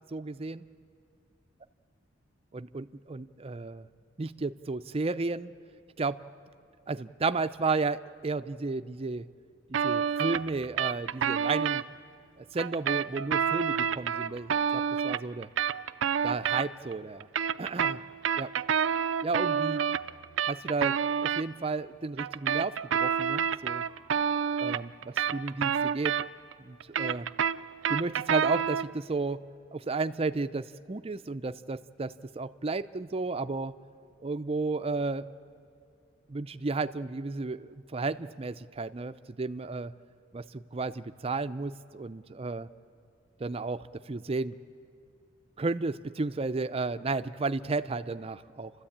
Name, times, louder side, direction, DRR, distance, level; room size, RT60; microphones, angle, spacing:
voice 1, 0.1-0.6 2.5-3.9 4.2-5.5 6.0-6.2 6.9-9.3 9.7-11.8 12.4-15.5 16.2-17.3 17.6-18.0 18.4-18.5 19.2-19.8 20.5-23.8 24.6-26.1 26.6-27.3 27.9-29.4 29.7-33.8 34.2-35.3 36.3-39.9 40.3-42.7 43.4-44.5 45.6-48.7, right 3 dB, 30° right, 11 dB, 0.5 m, -33 dB
sound 1, 9.7-11.8 12.6-16.9 17.2-21.4 22.2-26.5 26.8-28.9, right 7 dB, 85° right, 0.4 m, -28 dB
30.0 x 13.0 x 8.7 m, 2.4 s
head